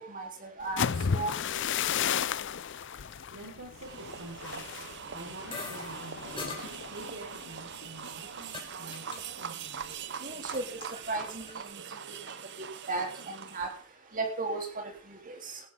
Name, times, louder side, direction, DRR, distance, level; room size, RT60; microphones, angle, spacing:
voice 1, 0.0-1.6 5.8-6.0 10.2-13.7 14.1-15.6, right 3 dB, 40° right, 3 dB, 3.6 m, -37 dB
sound 1, 0.6-8.5 8.8-9.1 9.5-9.9, left 7 dB, 60° left, 0.5 m, -34 dB
voice 2, 3.3-9.1 9.3-9.9 10.3-10.4, right 2 dB, 85° right, -2 dB, 5.1 m, -47 dB
sound 2, 3.8-13.9, right 7 dB, 60° right, 0.9 m, -42 dB
sound 3, 5.5-5.9 6.4-6.6 7.6-8.7 8.9-9.2 9.5-9.9 10.2-11.5, left 4 dB, 25° left, 3.8 m, -42 dB
17.0 x 12.0 x 3.8 m, 0.36 s
head